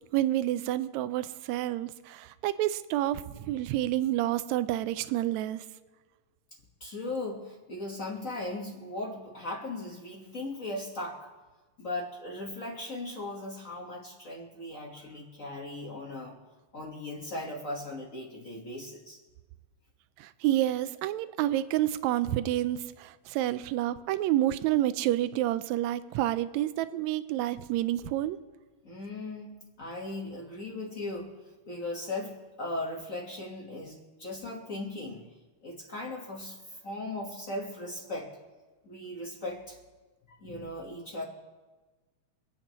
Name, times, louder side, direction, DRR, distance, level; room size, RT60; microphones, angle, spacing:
voice 1, 0.1-5.6 20.2-28.4, right 14 dB, 80° right, 13 dB, 1.8 m, -29 dB
voice 2, 6.8-11.3 11.8-16.4 16.7-19.2 28.8-29.5 29.8-31.3 31.7-35.2 35.6-38.3 38.8-39.8 40.3-41.2, left 2 dB, 40° left, -2 dB, 1.2 m, -38 dB
26.0 x 8.7 x 3.0 m, 1.3 s
omnidirectional pair, 3.4 m